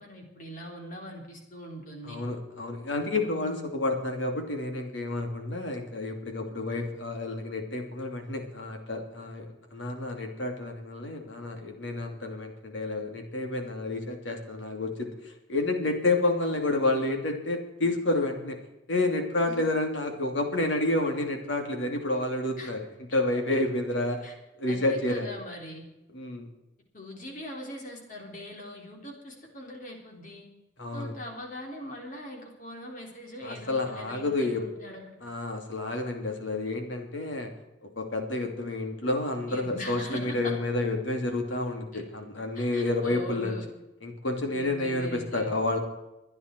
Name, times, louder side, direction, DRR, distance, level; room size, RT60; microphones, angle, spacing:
voice 1, 0.0-2.2 3.2-3.7 19.5-19.6 22.6-22.7 24.2-24.4 24.7-25.8 26.9-30.5 30.9-35.1 39.5-40.5 41.9-42.0 42.6-43.7 44.5-45.6, equal, 45° left, 0 dB, 3.9 m, -41 dB
voice 2, 2.0-18.6 18.9-22.8 23.1-24.3 24.6-25.3 26.1-26.5 30.8-31.1 33.4-34.6 35.2-37.5 38.0-43.6 44.0-45.8, left 2 dB, 80° left, 3 dB, 3.0 m, -29 dB
25.0 x 10.0 x 4.6 m, 0.94 s
head